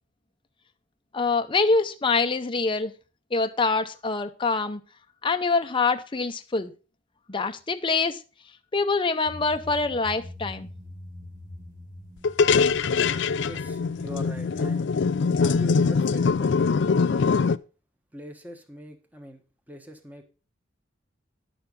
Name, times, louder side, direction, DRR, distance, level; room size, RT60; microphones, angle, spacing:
voice 1, 1.1-2.9 3.3-4.8 5.2-6.7 7.3-8.2 8.7-10.7, left 4 dB, 25° left, 0.7 m, -25 dB
sound 1, 9.2-14.7, left 1 dB, 45° right, 2.1 m, -44 dB
sound 2, 12.2-17.6, left 5 dB, 65° left, 0.4 m, -23 dB
voice 2, 13.4-14.9 15.4-16.6 17.0-17.3 18.1-20.2, equal, 10° right, 1.2 m, -42 dB
11.0 x 6.8 x 5.2 m
head